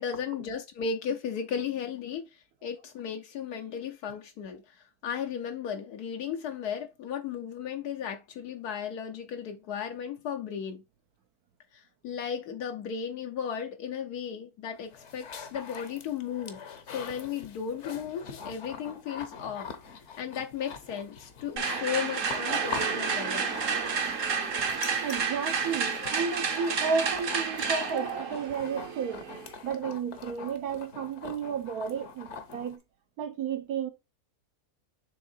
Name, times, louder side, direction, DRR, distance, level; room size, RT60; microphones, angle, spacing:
voice 1, 0.0-10.8 11.7-16.6 16.9-23.5 24.0-24.2, left 7 dB, 80° left, 1.3 m, -35 dB
sound 1, 14.7-32.8, left 6 dB, 55° left, 1.1 m, -44 dB
sound 2, 21.6-29.5, right 5 dB, 55° right, 1.3 m, -30 dB
voice 2, 25.0-29.3 29.6-32.8 33.2-33.9, right 6 dB, 75° right, 1.4 m, -32 dB
6.5 x 3.6 x 4.3 m
omnidirectional pair, 1.7 m